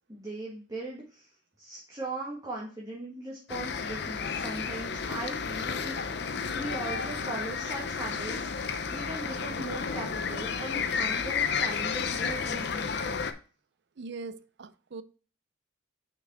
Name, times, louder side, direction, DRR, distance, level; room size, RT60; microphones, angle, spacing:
voice 1, 0.1-1.3 1.6-13.0, right 2 dB, 20° right, 1.8 m, -39 dB
sound 1, 3.5-13.3, left 6 dB, 60° left, 0.7 m, -32 dB
voice 2, 14.0-15.0, right 4 dB, 65° right, 0.5 m, -41 dB
6.0 x 5.6 x 3.7 m
head